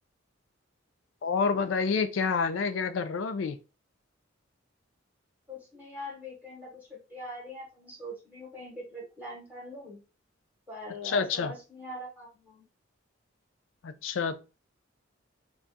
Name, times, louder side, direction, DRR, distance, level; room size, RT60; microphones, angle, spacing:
voice 1, 1.2-3.6 11.0-11.5 13.8-14.4, left 5 dB, 70° left, 0.4 m, -28 dB
voice 2, 5.5-10.0 10.7-12.6, left 1 dB, 10° right, 0.9 m, -43 dB
2.3 x 2.3 x 3.9 m
head